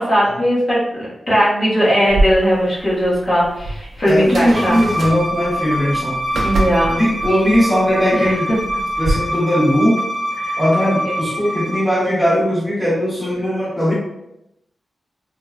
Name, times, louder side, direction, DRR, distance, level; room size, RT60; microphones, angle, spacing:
voice 1, 0.0-4.8 6.4-7.0 8.1-8.3 9.0-9.1 10.4-10.6 11.0-11.2, equal, 35° left, -9 dB, 0.9 m, -18 dB
sound 1, 2.1-9.1, right 2 dB, 60° right, 0.4 m, -26 dB
voice 2, 4.0-6.2 6.9-8.5 9.0-10.0 10.6-13.9, equal, 5° left, -8 dB, 0.9 m, -18 dB
Bowed string instrument, 4.5-11.8, equal, 40° right, 1.1 m, -25 dB
3.3 x 2.2 x 2.3 m, 0.83 s
wide cardioid pair, 175°, 0 cm